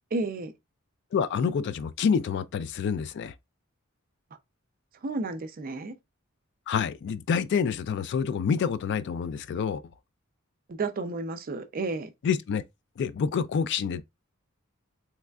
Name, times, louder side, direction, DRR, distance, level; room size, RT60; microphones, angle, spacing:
voice 1, 0.1-0.5 5.0-6.0 10.7-12.1, right 3 dB, 40° right, 0.4 m, -32 dB
voice 2, 1.1-3.3 6.7-9.8 12.2-12.6 13.0-14.0, left 6 dB, 55° left, 0.3 m, -27 dB
3.5 x 3.1 x 2.2 m
head